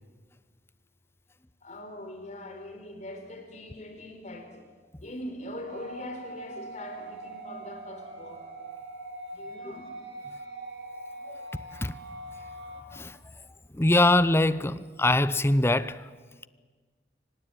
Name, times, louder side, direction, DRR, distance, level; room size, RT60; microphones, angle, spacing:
voice 1, 1.6-4.6 5.0-8.5 9.3-9.9, left 1 dB, 45° left, 4.3 m, -41 dB
sound 1, 5.7-12.8, right 2 dB, 90° right, 5.3 m, -42 dB
voice 2, 13.7-16.1, left 1 dB, 15° left, 0.7 m, -23 dB
25.0 x 19.0 x 9.2 m
head